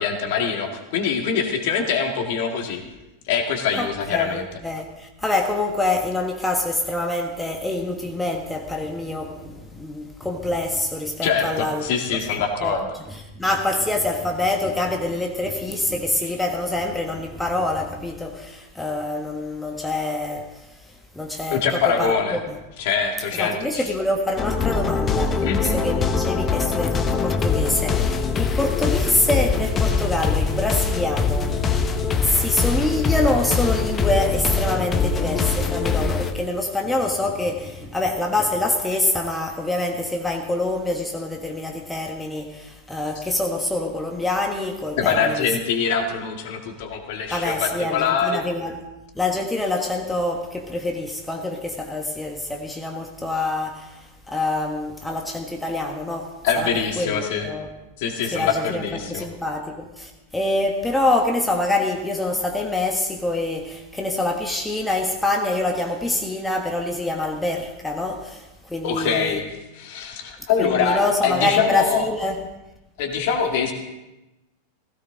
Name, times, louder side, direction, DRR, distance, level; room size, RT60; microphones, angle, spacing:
voice 1, 0.0-2.8 3.3-4.5 11.2-12.9 21.5-22.4 22.8-23.9 25.4-25.8 45.0-48.4 56.4-57.5 58.0-59.3 68.8-72.1 73.0-73.7, left 6 dB, 50° left, 2.1 m, -24 dB
voice 2, 3.8-11.8 12.6-12.7 13.1-22.6 23.3-45.5 47.3-48.8 49.1-56.7 57.0-57.7 58.3-69.4 70.6-72.4, left 2 dB, 5° left, 1.4 m, -25 dB
sound 1, 24.4-36.3, left 5 dB, 20° left, 1.1 m, -23 dB
16.5 x 16.0 x 3.9 m
figure-of-eight pair, 90°, 0 cm